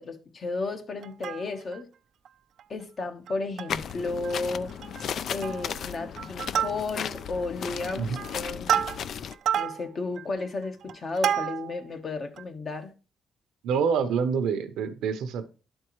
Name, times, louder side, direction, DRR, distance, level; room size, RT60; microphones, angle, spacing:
voice 1, 0.0-1.9 2.7-4.7 5.3-8.8 9.5-12.9, left 3 dB, 45° left, 1.0 m, -33 dB
Plucked string instrument, 1.0-1.8 2.3-2.4 2.6-2.8 3.3-3.9 4.2-4.4 4.7-5.1 5.4-5.8 6.2-7.2 7.7-11.9 12.4-12.5, right 9 dB, 70° right, 0.4 m, -30 dB
sound 1, 3.7-9.3, left 8 dB, 60° left, 0.3 m, -35 dB
voice 2, 13.6-15.4, right 6 dB, 85° right, 0.7 m, -26 dB
11.5 x 4.5 x 3.0 m
cardioid pair, 90°, 0 cm